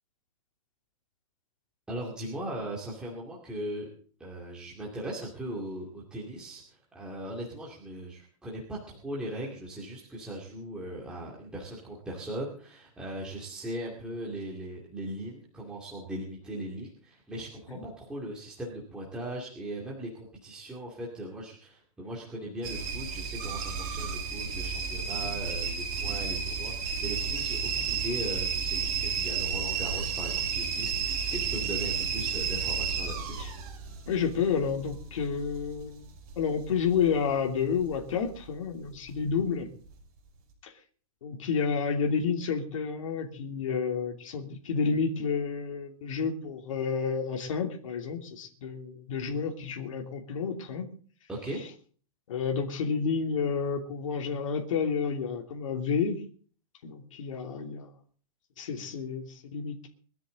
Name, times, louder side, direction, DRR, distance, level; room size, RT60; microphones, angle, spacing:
voice 1, 1.9-3.9 4.2-33.7 51.3-51.6, right 1 dB, 5° right, -4 dB, 2.3 m, -39 dB
sound 1, 22.6-37.5 37.8-38.4 38.9-39.4 39.9-40.0, right 6 dB, 30° right, 5.8 m, -32 dB
voice 2, 34.1-36.1 36.4-39.7 40.6-40.7 41.2-50.9 52.3-56.2 56.8-57.9 58.6-59.9, left 6 dB, 60° left, 3 dB, 3.0 m, -30 dB
22.5 x 13.0 x 3.8 m, 0.43 s
supercardioid pair, 175°, 19 cm